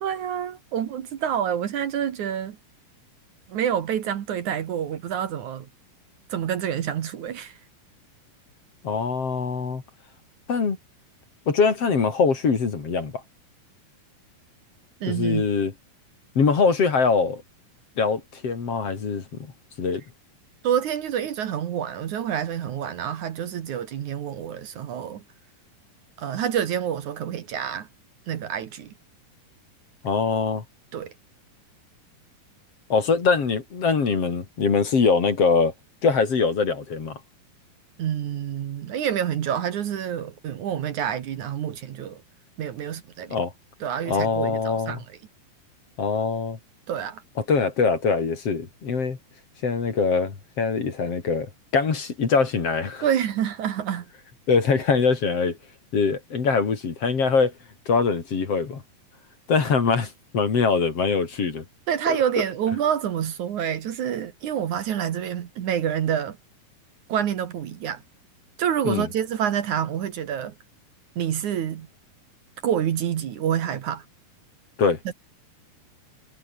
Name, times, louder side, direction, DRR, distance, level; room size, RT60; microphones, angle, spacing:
voice 1, 0.0-2.6 3.5-5.7 6.3-7.6 15.0-15.5 20.6-25.2 26.2-27.9 28.3-28.9 30.9-31.1 38.0-42.2 42.6-43.4 43.8-45.0 46.9-47.2 53.0-54.1 61.9-66.4 67.1-68.0 68.6-70.5 71.2-71.9 72.6-74.0 75.1-75.2, right 9 dB, 65° right, 2.8 m, -27 dB
voice 2, 8.8-9.8 10.5-10.8 11.5-13.2 15.1-15.7 16.4-17.4 18.0-19.2 19.8-20.0 30.0-30.6 32.9-35.7 36.0-37.2 43.3-43.5 44.1-45.0 46.0-46.6 47.4-49.2 49.6-53.0 54.5-55.6 55.9-57.5 57.9-58.8 59.5-61.6 62.1-62.2 68.8-69.1 74.8-75.0, left 5 dB, 45° left, 3.9 m, -23 dB
omnidirectional pair, 4.0 m